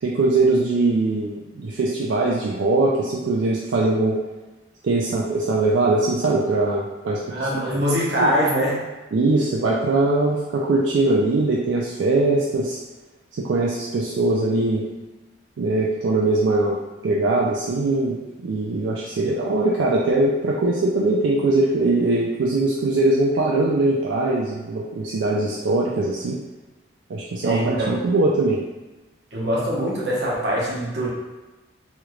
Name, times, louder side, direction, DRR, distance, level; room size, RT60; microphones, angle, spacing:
voice 1, 0.0-4.2 4.8-7.2 7.7-8.3 9.1-12.8 13.4-14.8 15.6-16.8 17.0-26.4 27.1-28.6, right 2 dB, 80° right, -4 dB, 0.4 m, -21 dB
voice 2, 7.3-8.8 27.4-27.9 29.3-31.1, equal, 60° right, -5 dB, 0.9 m, -23 dB
3.1 x 2.4 x 3.1 m, 1.1 s
head